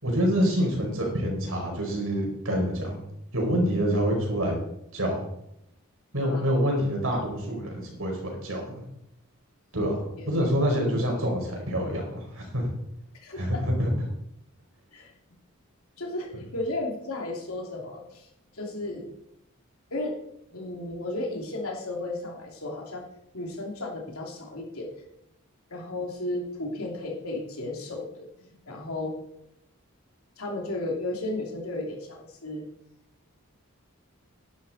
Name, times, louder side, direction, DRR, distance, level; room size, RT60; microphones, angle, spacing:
voice 1, 0.0-3.0 3.3-4.6 4.9-5.2 6.1-8.8 9.7-12.7 13.4-13.9, equal, 75° right, 0 dB, 4.8 m, -26 dB
voice 2, 13.1-13.7 14.9-15.1 16.0-19.1 19.9-20.1 20.5-23.1 23.3-24.9 25.7-29.2 30.4-32.6, left 2 dB, 85° left, 0 dB, 3.1 m, -34 dB
11.5 x 11.0 x 4.3 m, 0.80 s
head